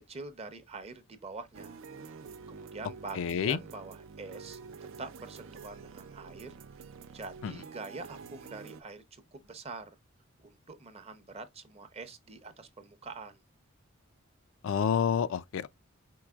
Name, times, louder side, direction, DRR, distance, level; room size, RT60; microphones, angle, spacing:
voice 1, 0.0-1.8 2.5-4.6 5.0-6.6 7.1-9.0 9.3-9.9 10.4-13.4, right 3 dB, 30° right, 0.7 m, -45 dB
sound 1, 1.5-8.8, right 5 dB, 65° right, 0.4 m, -48 dB
voice 2, 3.2-3.6 7.4-7.5 14.6-15.7, left 7 dB, 65° left, 0.4 m, -28 dB
4.6 x 4.4 x 2.3 m
head